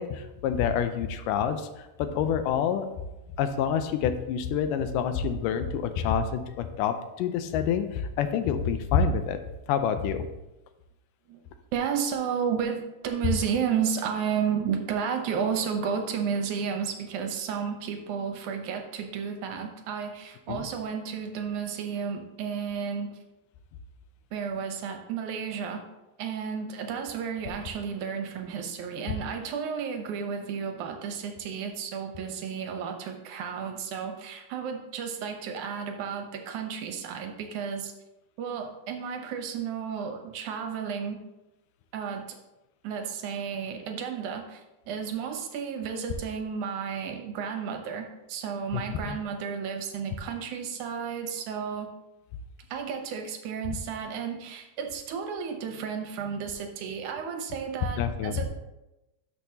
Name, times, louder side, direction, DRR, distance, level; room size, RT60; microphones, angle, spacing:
voice 1, 0.0-2.9 3.4-9.4 9.7-10.3 20.5-20.6 48.7-49.2 58.0-58.5, left 7 dB, 90° left, 9 dB, 2.2 m, -27 dB
voice 2, 11.7-23.2 24.3-25.8 26.2-37.9 38.4-41.2 41.9-42.4 42.8-51.9 52.7-58.4, right 7 dB, 75° right, 4 dB, 2.2 m, -32 dB
12.0 x 6.4 x 2.8 m, 0.98 s
omnidirectional pair, 3.7 m